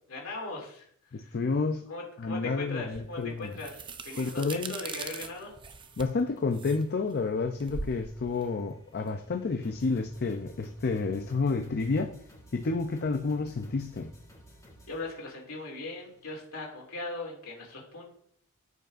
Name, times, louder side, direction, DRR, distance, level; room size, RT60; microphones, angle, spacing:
voice 1, 0.1-1.4 1.9-5.5 14.9-18.1, left 2 dB, 70° left, -1 dB, 2.6 m, -39 dB
voice 2, 1.1-1.9 2.2-3.5 4.2-4.7 6.0-12.1 12.5-14.1, left 4 dB, 45° left, 5 dB, 0.5 m, -30 dB
sound 1, 2.9-9.7, right 4 dB, 20° right, 0.4 m, -42 dB
sound 2, 4.3-16.4, equal, 15° left, 1.8 m, -57 dB
13.5 x 5.3 x 2.5 m, 0.63 s
head